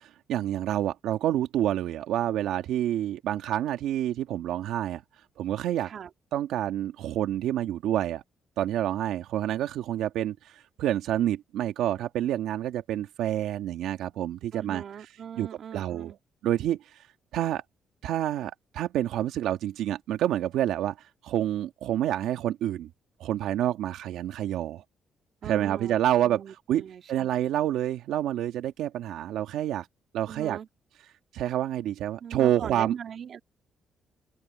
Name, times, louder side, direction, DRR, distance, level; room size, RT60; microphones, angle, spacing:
voice 1, 0.0-5.0 5.4-5.9 6.3-8.2 8.6-14.8 15.4-16.1 16.4-17.0 17.3-17.6 18.0-22.9 23.2-24.8 25.4-26.4 26.7-26.8 27.1-29.9 30.1-30.6 31.3-32.9, right 12 dB, 85° right, 1.8 m, -28 dB
voice 2, 5.8-6.1 14.5-16.2 25.4-26.0 26.2-27.5 30.3-30.7 32.2-33.4, right 8 dB, 60° right, 2.3 m, -40 dB
open air
cardioid pair, 90°, 0 cm